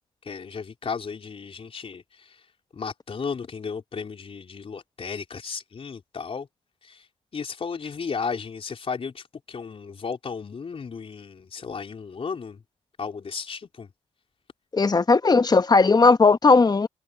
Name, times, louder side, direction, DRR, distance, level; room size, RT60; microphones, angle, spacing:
voice 1, 0.2-2.5 2.7-6.5 6.8-7.1 7.3-12.6 13.0-13.9, left 5 dB, 45° left, 4.3 m, -34 dB
voice 2, 14.7-16.9, left 4 dB, 30° left, 1.3 m, -17 dB
supercardioid pair, 60°, 13 cm